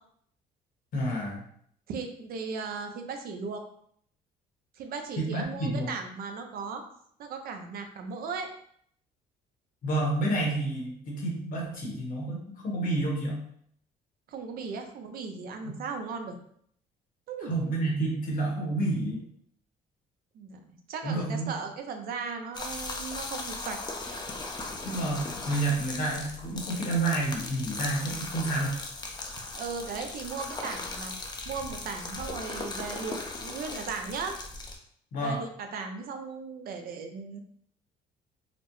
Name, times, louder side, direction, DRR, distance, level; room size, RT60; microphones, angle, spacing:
voice 1, 0.9-1.4 5.2-5.9 9.8-13.4 15.6-15.8 17.4-19.2 21.0-21.5 24.8-28.7 35.1-35.4, right 2 dB, 55° left, -1 dB, 1.2 m, -29 dB
voice 2, 1.9-3.6 4.8-6.8 7.2-8.5 14.3-16.4 17.3-17.5 20.3-23.8 29.5-31.2 31.5-34.3 35.2-37.4, right 5 dB, 60° right, 5 dB, 0.6 m, -37 dB
sound 1, 22.5-34.8, left 3 dB, 25° left, 0.5 m, -38 dB
4.1 x 2.1 x 3.0 m, 0.65 s
cardioid pair, 110°, 17 cm